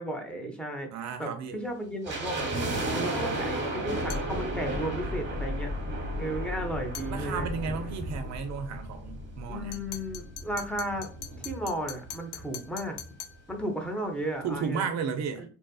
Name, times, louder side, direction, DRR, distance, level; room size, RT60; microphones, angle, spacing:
voice 1, 0.0-2.5 2.9-5.7 6.2-7.5 9.5-11.1 11.4-13.0 13.5-14.9, right 1 dB, 5° left, 0.7 m, -34 dB
voice 2, 0.9-1.6 7.1-9.8 14.4-15.4, right 6 dB, 45° right, 0.6 m, -33 dB
sound 1, 2.0-9.3 9.6-9.7 10.4-12.2 12.4-12.5 12.8-13.1 13.5-13.6, right 2 dB, 30° right, 1.2 m, -34 dB
sound 2, 4.0-10.8, left 2 dB, 25° left, 1.0 m, -38 dB
sound 3, 4.1-4.4 6.9-7.2 9.7-13.4, left 8 dB, 75° left, 0.7 m, -42 dB
2.7 x 2.3 x 2.3 m
hypercardioid pair, 75°, 39 cm